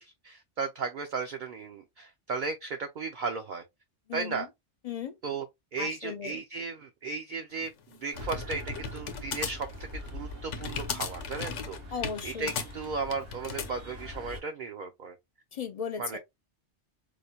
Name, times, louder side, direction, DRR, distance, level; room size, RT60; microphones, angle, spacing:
voice 1, 0.0-3.6 4.1-4.5 5.2-5.5 5.7-9.7 10.1-11.8 12.2-15.2 16.0-16.2, right 4 dB, 55° right, 0.6 m, -35 dB
voice 2, 4.1-4.5 4.8-5.1 5.8-6.4 11.9-12.5 15.5-16.2, left 6 dB, 60° left, 0.4 m, -36 dB
sound 1, 7.6-13.7, left 6 dB, 85° left, 1.0 m, -36 dB
sound 2, 8.1-14.4, left 1 dB, 80° right, 2.8 m, -43 dB
4.8 x 2.2 x 2.7 m
omnidirectional pair, 1.2 m